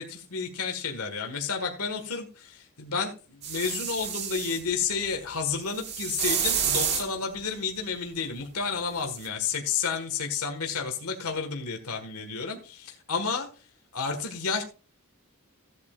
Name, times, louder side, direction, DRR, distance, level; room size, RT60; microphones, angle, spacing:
voice 1, 0.0-13.5 13.9-14.6, left 5 dB, 85° left, 4 dB, 1.7 m, -31 dB
sound 1, 3.4-4.6 5.7-7.1 9.2-9.3, right 8 dB, 50° right, 1.6 m, -29 dB
16.0 x 8.5 x 2.4 m, 0.35 s
head